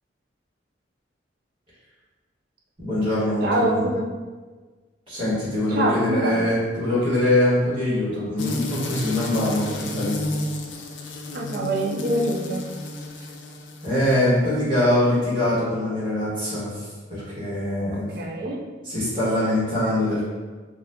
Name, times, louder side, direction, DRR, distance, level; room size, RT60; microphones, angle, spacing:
voice 1, 2.8-3.9 5.1-10.2 13.2-13.3 13.8-18.1 18.8-20.2, left 1 dB, 25° right, -10 dB, 1.5 m, -23 dB
voice 2, 3.4-4.1 5.7-6.4 11.3-12.6 17.9-18.6, right 1 dB, 55° right, 0 dB, 0.5 m, -25 dB
sound 1, 8.4-14.4, left 2 dB, 85° left, 0.4 m, -32 dB
4.1 x 2.4 x 2.6 m, 1.4 s
head